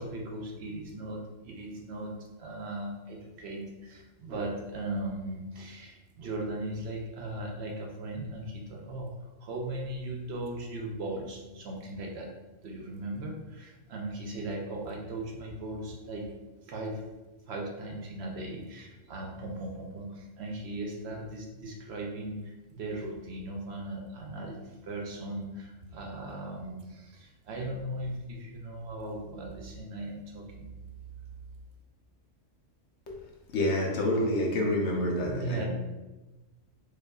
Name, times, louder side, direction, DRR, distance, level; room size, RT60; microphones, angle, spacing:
voice 1, 0.0-9.1 9.4-12.3 12.6-16.3 16.6-17.0 17.5-30.7 35.3-35.7, right 1 dB, 65° right, 0 dB, 0.8 m, -38 dB
voice 2, 33.5-35.7, left 1 dB, 65° left, 0 dB, 0.9 m, -28 dB
4.7 x 2.3 x 2.3 m, 1.1 s
omnidirectional pair, 1.3 m